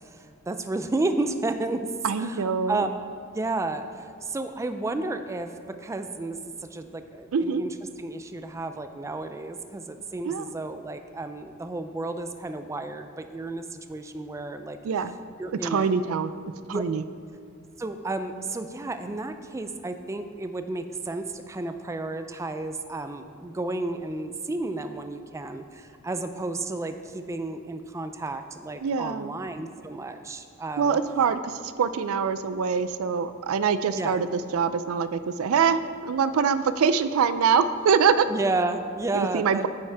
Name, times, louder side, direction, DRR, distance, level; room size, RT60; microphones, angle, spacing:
voice 1, 0.0-1.9 2.2-2.9 3.3-6.4 6.7-14.8 15.4-16.2 16.7-16.8 17.8-31.0 33.9-34.2 38.3-39.7, right 2 dB, 15° right, 8 dB, 0.3 m, -32 dB
voice 2, 2.0-2.9 7.3-7.6 10.2-10.4 14.8-15.1 15.6-16.3 16.7-17.0 28.8-29.3 30.8-38.3 39.1-39.7, right 6 dB, 90° right, 12 dB, 0.4 m, -24 dB
9.6 x 7.0 x 3.4 m, 2.5 s
head